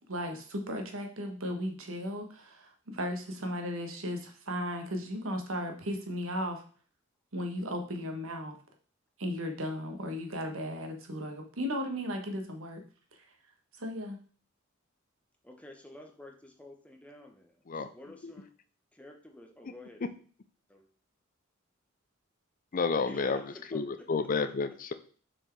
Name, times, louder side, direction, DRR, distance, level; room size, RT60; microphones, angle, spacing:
voice 1, 0.1-6.6 7.3-8.6 9.2-12.8 13.8-14.2, equal, 70° right, 4 dB, 1.4 m, -35 dB
voice 2, 15.4-18.5 18.9-20.0 20.7-20.9 23.1-24.1, left 1 dB, 5° left, 2 dB, 0.9 m, -50 dB
voice 3, 22.7-24.9, left 4 dB, 40° left, 11 dB, 0.5 m, -31 dB
6.4 x 4.6 x 4.6 m, 0.43 s
head